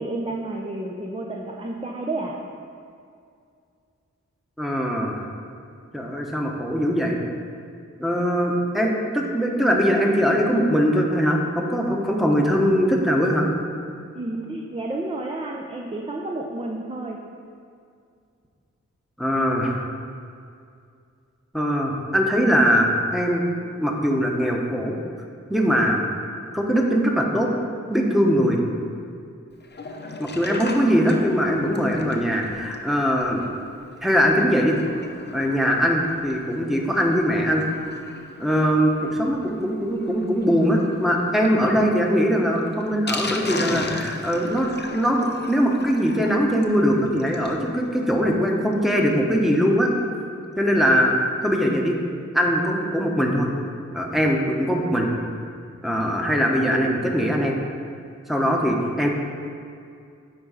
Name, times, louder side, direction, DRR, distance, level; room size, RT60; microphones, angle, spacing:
voice 1, 0.0-2.3 14.2-17.2, right 2 dB, 20° right, -1 dB, 0.7 m, -30 dB
voice 2, 4.6-5.2 5.9-7.2 8.0-13.5 19.2-19.9 21.5-23.4 23.8-25.0 25.5-26.0 26.5-27.5 27.9-28.6 30.2-33.4 34.0-34.8 35.3-37.6 38.4-49.9 50.6-51.1 51.4-52.0 52.3-53.5 53.9-55.1 55.8-57.6 58.3-59.1, equal, ahead, -1 dB, 1.1 m, -21 dB
Sink (filling or washing), 29.6-47.6 48.0-48.1 48.3-48.4 48.7-48.8, left 3 dB, 35° left, 0.7 m, -37 dB
8.7 x 3.9 x 5.6 m, 2.3 s
cardioid pair, 55°, 29 cm